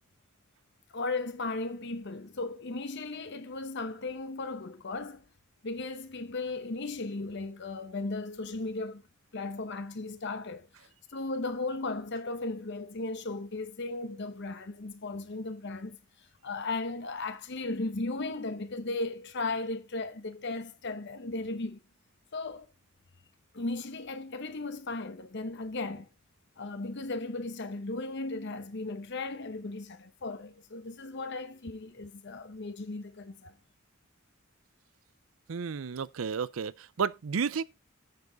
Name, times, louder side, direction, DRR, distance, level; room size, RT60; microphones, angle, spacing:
voice 1, 0.9-5.2 5.6-9.0 9.3-10.7 11.1-16.0 16.4-21.8 22.3-22.7 23.5-26.1 26.6-33.5, left 3 dB, 60° left, 1.0 m, -36 dB
voice 2, 35.5-37.6, right 6 dB, 75° right, 0.5 m, -32 dB
9.4 x 7.1 x 3.9 m
head